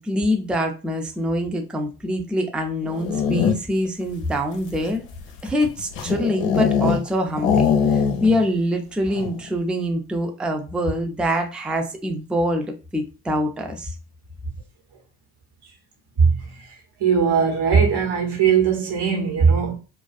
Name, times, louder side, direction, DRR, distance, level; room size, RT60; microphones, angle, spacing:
voice 1, 0.0-5.0 5.4-12.7 12.9-13.9, equal, ahead, 0.4 m, -25 dB
sound 1, 2.8-3.9 4.5-7.1 7.4-8.5 8.7-8.8 9.1-9.5, left 7 dB, 65° left, 0.7 m, -22 dB
voice 2, 17.0-19.7, right 6 dB, 55° right, 1.1 m, -19 dB
2.4 x 2.4 x 2.3 m
hypercardioid pair, 50°, 48 cm